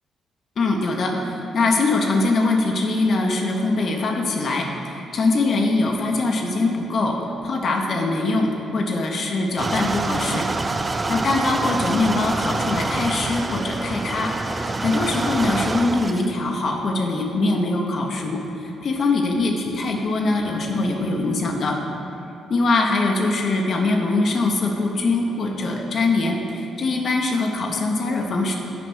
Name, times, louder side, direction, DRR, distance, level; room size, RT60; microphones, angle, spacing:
voice 1, 0.6-10.5 11.1-21.8 22.5-28.5, left 3 dB, 50° left, 1 dB, 0.8 m, -22 dB
sound 1, 9.6-16.3, right 3 dB, 30° right, 0.4 m, -26 dB
6.9 x 5.1 x 6.2 m, 2.9 s
hypercardioid pair, 40°, 0 cm